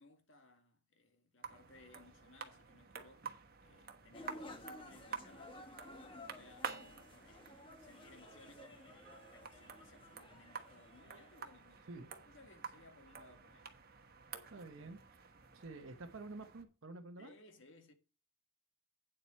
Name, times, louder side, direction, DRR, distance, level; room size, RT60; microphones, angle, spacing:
voice 1, 0.0-3.3 3.6-11.9 12.3-13.7 17.2-17.9, left 2 dB, 65° left, 1.8 m, -62 dB
sound 1, 1.4-16.6, right 6 dB, 50° right, 1.3 m, -51 dB
sound 2, 4.1-11.6, left 1 dB, 25° left, 1.4 m, -54 dB
voice 2, 14.5-15.2 15.5-17.3, right 2 dB, 75° right, 0.9 m, -49 dB
9.0 x 7.7 x 4.3 m
head